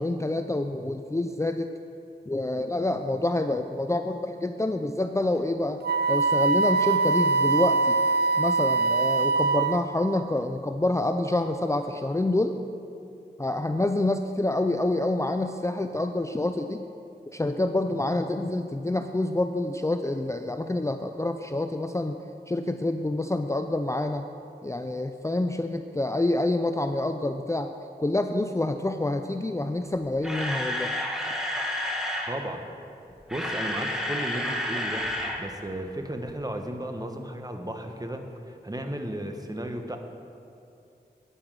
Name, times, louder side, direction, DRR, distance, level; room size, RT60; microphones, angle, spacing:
voice 1, 0.0-1.7 2.3-5.8 6.1-8.0 8.4-12.6 13.4-16.8 17.3-22.2 22.5-24.2 24.6-27.7 28.0-30.9, left 2 dB, 15° left, 7 dB, 0.4 m, -27 dB
Wind instrument woodwind instrument, 5.8-10.0, right 4 dB, 70° right, 0.4 m, -23 dB
Camera, 30.1-32.3 33.1-35.4 35.7-35.8 36.3-36.4, left 1 dB, 5° right, 1.7 m, -30 dB
voice 2, 32.3-32.6 33.3-35.0 35.4-38.2 38.5-40.0, right 1 dB, 20° right, 4 dB, 1.1 m, -34 dB
9.7 x 8.9 x 6.1 m, 2.6 s
wide cardioid pair, 45°, 17 cm